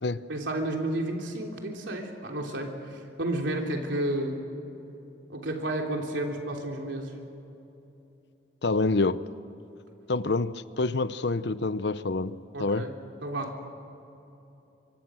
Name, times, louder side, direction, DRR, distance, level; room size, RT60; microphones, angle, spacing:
voice 1, 0.3-4.4 5.3-7.1 12.5-12.9 13.2-13.5, right 1 dB, 85° right, 3.4 m, -31 dB
voice 2, 8.6-9.2 10.1-12.9, left 3 dB, 70° left, 0.7 m, -27 dB
24.5 x 24.0 x 6.3 m
head